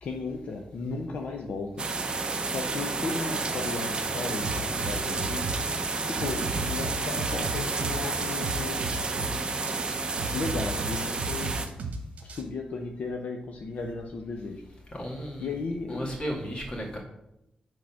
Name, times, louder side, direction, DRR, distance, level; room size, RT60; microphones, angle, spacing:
voice 1, 0.0-1.8 2.4-8.8 9.4-9.7 10.3-11.5 12.2-14.6 15.4-16.2, left 3 dB, 65° left, 2 dB, 0.7 m, -35 dB
sound 1, 1.8-11.7, right 3 dB, 35° right, 0.8 m, -30 dB
sound 2, 4.4-12.4, right 3 dB, 70° right, 1.2 m, -35 dB
voice 2, 14.9-15.6 15.9-17.0, equal, 35° left, -1 dB, 2.0 m, -34 dB
7.6 x 3.8 x 5.8 m, 0.85 s
wide cardioid pair, 135°, 3 cm